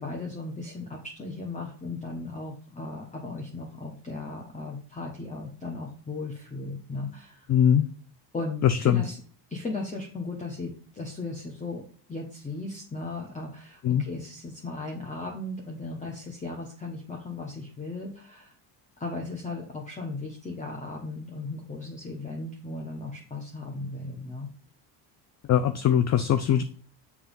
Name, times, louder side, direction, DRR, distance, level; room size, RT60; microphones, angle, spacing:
voice 1, 0.0-7.5 8.3-9.2 9.5-11.8 12.1-18.5 19.0-24.5, left 3 dB, 15° left, 0 dB, 1.3 m, -36 dB
voice 2, 7.5-7.8 8.6-9.0 13.8-14.0 25.5-26.6, left 9 dB, 35° left, 11 dB, 0.5 m, -21 dB
7.1 x 3.4 x 5.4 m, 0.44 s
supercardioid pair, 100°, 48 cm